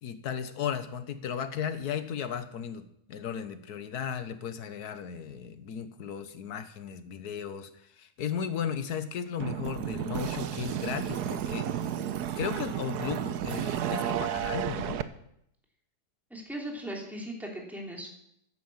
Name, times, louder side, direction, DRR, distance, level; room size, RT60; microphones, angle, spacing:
voice 1, 0.0-7.7 8.0-11.8 12.3-15.0, left 7 dB, 80° left, 11 dB, 1.5 m, -35 dB
sound 1, 9.4-15.0, right 10 dB, 90° right, 1.3 m, -32 dB
voice 2, 16.3-18.1, right 1 dB, ahead, -2 dB, 3.0 m, -38 dB
10.5 x 9.6 x 7.3 m, 0.75 s
omnidirectional pair, 1.7 m